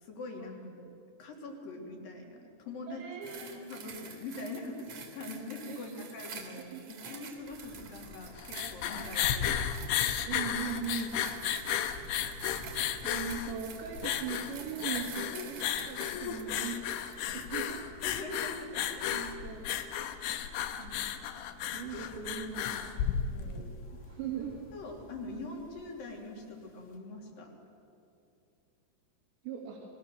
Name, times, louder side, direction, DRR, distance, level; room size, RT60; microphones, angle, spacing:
voice 1, 0.0-0.9 1.2-3.0 3.4-9.7 11.4-11.5 18.0-19.2 21.8-22.3 24.7-27.5, left 2 dB, 55° left, 1 dB, 4.3 m, -43 dB
voice 2, 2.9-3.7 5.7-6.1 6.5-6.8 10.2-11.1 13.0-17.8 19.1-19.6 20.8-21.0 21.3-21.4 21.7-22.8 23.1-23.6 24.1-24.5 29.4-29.8, right 6 dB, 75° right, -3 dB, 4.8 m, -40 dB
sound 1, 3.2-17.6 18.2-18.3, right 5 dB, 45° right, 3.1 m, -48 dB
sound 2, 7.4-27.0, equal, 20° left, 1.7 m, -55 dB
sound 3, 8.3-23.7, left 9 dB, 80° left, 3.2 m, -34 dB
30.0 x 21.5 x 6.9 m, 2.7 s
omnidirectional pair, 5.1 m